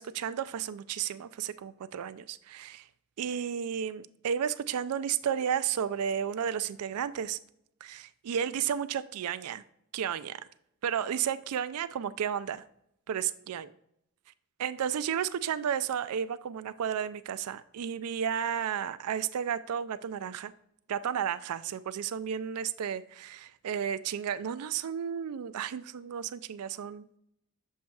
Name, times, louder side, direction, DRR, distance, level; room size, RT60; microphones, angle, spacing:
voice 1, 0.0-2.8 3.2-7.4 7.8-9.6 9.9-10.4 10.8-12.6 13.1-13.7 14.6-20.5 20.9-27.0, right 8 dB, 85° right, 0.4 m, -33 dB
7.3 x 6.2 x 2.3 m
head